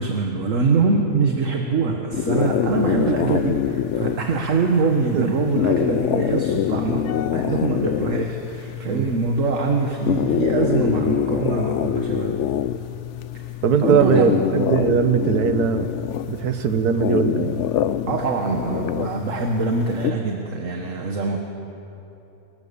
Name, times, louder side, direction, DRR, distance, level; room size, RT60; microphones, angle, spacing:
voice 1, 0.0-12.4 13.8-14.4 18.1-21.4, right 4 dB, 50° right, 2 dB, 1.7 m, -23 dB
sound 1, 2.1-20.1, left 10 dB, 65° left, 0.8 m, -25 dB
voice 2, 2.8-3.3 5.1-5.3 7.3-7.4 8.9-9.1 13.6-15.9 16.3-17.5, right 7 dB, 70° right, 9 dB, 1.6 m, -21 dB
28.0 x 15.5 x 6.9 m, 3.0 s
omnidirectional pair, 1.7 m